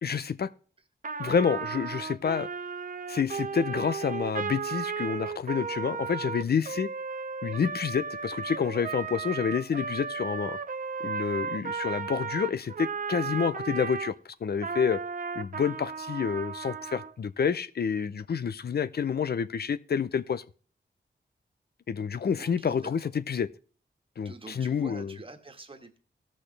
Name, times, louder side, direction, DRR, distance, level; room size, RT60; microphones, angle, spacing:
voice 1, 0.0-0.5 1.2-2.5 3.1-6.9 7.4-10.6 11.0-14.1 14.4-15.0 15.3-20.4 21.9-23.5 24.2-25.1, left 6 dB, 55° left, 0.6 m, -28 dB
Trumpet, 1.0-14.1 14.6-17.1, right 5 dB, 45° right, 0.7 m, -35 dB
voice 2, 6.5-6.9 13.2-13.3 22.4-23.1 24.2-26.0, right 3 dB, 30° right, 1.5 m, -47 dB
17.5 x 6.3 x 3.3 m
wide cardioid pair, 150°, 19 cm